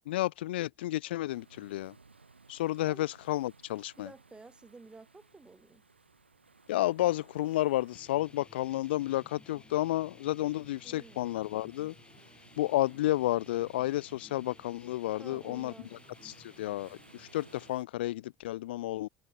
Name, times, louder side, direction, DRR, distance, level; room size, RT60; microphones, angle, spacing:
voice 1, 0.0-1.9 2.5-4.1 6.7-11.9 12.6-15.7 16.2-19.1, left 15 dB, 70° left, 0.4 m, -31 dB
sound 1, 1.3-17.9, right 4 dB, 85° right, 1.6 m, -60 dB
voice 2, 4.0-5.8 10.8-11.2 12.6-13.0 15.2-16.0, right 3 dB, 15° right, 6.6 m, -52 dB
sound 2, 7.9-17.7, left 3 dB, 15° left, 5.4 m, -57 dB
figure-of-eight pair, 65°, 6 cm